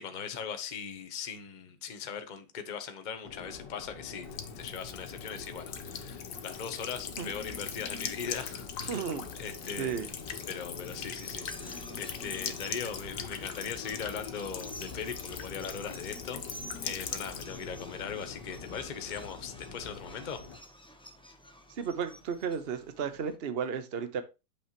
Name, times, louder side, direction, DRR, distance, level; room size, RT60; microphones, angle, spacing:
voice 1, 0.0-9.1 9.4-10.0 10.5-20.4, left 6 dB, 35° left, 0.9 m, -40 dB
Subway metro underground, 3.2-20.6, left 4 dB, 85° left, 2.0 m, -46 dB
Buzz / Water tap faucet / Trickle dribble, 4.2-17.4, left 7 dB, 55° left, 1.2 m, -41 dB
voice 2, 8.9-9.3 9.8-10.1 21.7-24.2, right 7 dB, 45° right, 1.0 m, -33 dB
sound 1, 9.2-23.4, equal, 5° left, 0.6 m, -51 dB
8.6 x 6.7 x 3.0 m
omnidirectional pair, 1.9 m